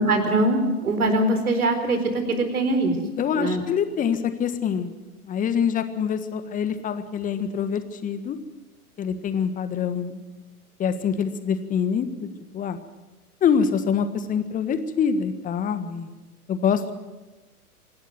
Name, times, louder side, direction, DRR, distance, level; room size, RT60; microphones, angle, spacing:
voice 1, 0.0-2.9 3.4-3.6, right 2 dB, 70° right, 7 dB, 4.3 m, -22 dB
voice 2, 3.2-4.9 5.2-8.4 9.0-10.3 10.8-12.3 12.5-12.8 13.4-16.1 16.5-16.9, left 7 dB, 15° left, 10 dB, 1.5 m, -25 dB
26.0 x 12.0 x 9.4 m, 1.1 s
figure-of-eight pair, 105°, 46 cm